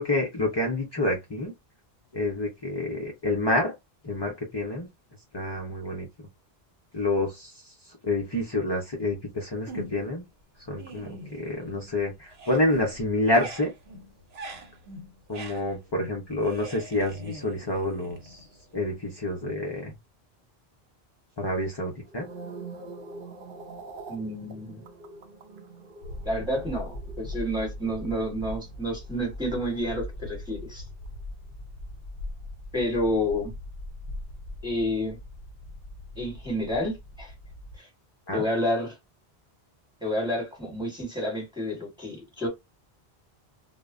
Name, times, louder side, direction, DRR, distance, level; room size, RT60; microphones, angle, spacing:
voice 1, 0.0-1.5 2.1-3.7 4.0-4.9 5.3-6.1 6.9-10.2 10.7-13.7 15.3-18.4 18.7-20.0 21.4-22.3 38.3-38.5, left 1 dB, 35° left, 0.5 m, -28 dB
sound 1, 9.7-10.2 10.6-12.0 12.2-18.8, right 1 dB, 80° right, 1.0 m, -43 dB
sound 2, 22.0-30.4 30.7-31.1, right 3 dB, 65° right, 0.7 m, -45 dB
voice 2, 24.1-24.8 26.2-30.9 32.7-33.5 34.6-35.2 36.2-37.3 37.8-37.9 38.3-39.0 40.0-42.5, left 1 dB, 5° right, 1.1 m, -29 dB
sound 3, 26.0-37.8, left 1 dB, 65° left, 0.8 m, -40 dB
2.1 x 2.0 x 3.5 m
omnidirectional pair, 1.0 m